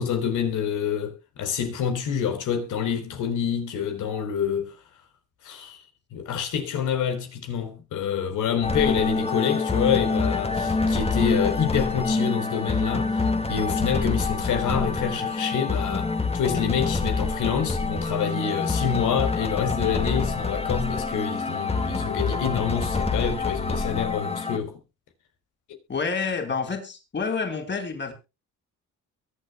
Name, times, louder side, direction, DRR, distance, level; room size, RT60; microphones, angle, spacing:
voice 1, 0.0-4.7 5.4-5.8 6.1-24.8, left 7 dB, 80° left, 4.3 m, -27 dB
sound 1, 8.6-24.6, left 3 dB, 20° left, 2.1 m, -26 dB
voice 2, 25.9-28.1, left 5 dB, 35° left, 4.5 m, -28 dB
22.5 x 8.5 x 2.3 m
cardioid pair, 90°, 30 cm